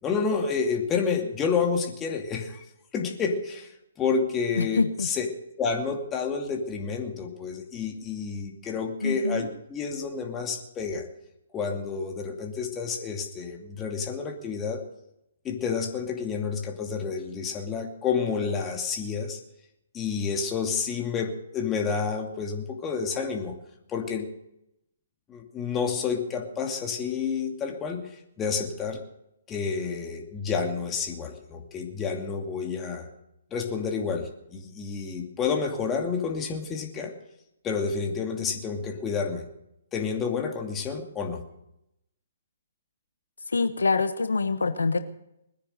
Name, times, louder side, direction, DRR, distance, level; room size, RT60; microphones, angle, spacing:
voice 1, 0.0-2.6 2.9-3.7 4.0-5.3 5.6-11.1 11.5-14.8 15.4-19.4 19.9-23.5 23.9-24.3 25.3-29.0 29.5-33.1 33.5-37.1 37.6-39.5 39.9-41.4, left 5 dB, 20° left, 2 dB, 2.6 m, -29 dB
voice 2, 4.6-5.1 9.0-9.5 43.5-45.0, left 4 dB, 80° left, 9 dB, 1.2 m, -25 dB
21.0 x 9.9 x 6.7 m, 0.82 s
figure-of-eight pair, 135°, 0 cm